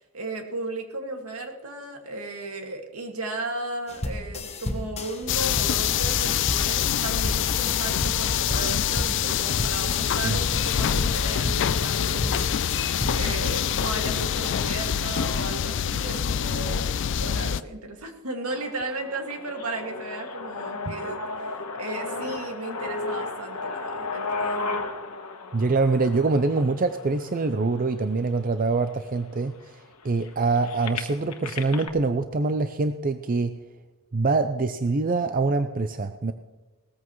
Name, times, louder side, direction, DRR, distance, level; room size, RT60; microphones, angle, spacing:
voice 1, 0.1-16.9 17.2-24.8, right 2 dB, 75° right, 3 dB, 2.2 m, -35 dB
sound 1, 3.9-13.4, left 1 dB, 30° left, 1.1 m, -32 dB
sound 2, 5.3-17.6, left 9 dB, 55° left, 0.4 m, -25 dB
sound 3, 18.5-28.4 29.1-29.2 29.4-31.9, left 3 dB, 90° left, 1.3 m, -34 dB
voice 2, 25.5-29.8 30.0-33.6 34.1-36.3, right 3 dB, 40° right, 9 dB, 0.5 m, -24 dB
18.5 x 14.0 x 3.1 m, 1.2 s
head